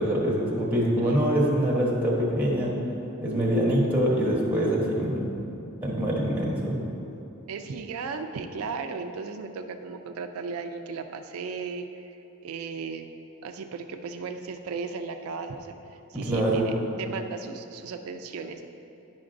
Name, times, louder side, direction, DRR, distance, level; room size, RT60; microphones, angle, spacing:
voice 1, 0.0-2.8 3.2-5.3 5.8-6.8 16.2-16.7, equal, 10° right, -6 dB, 1.1 m, -24 dB
voice 2, 7.5-12.2 12.4-13.1 13.4-18.7, right 4 dB, 80° right, 6 dB, 0.4 m, -36 dB
10.5 x 5.9 x 2.5 m, 2.9 s
head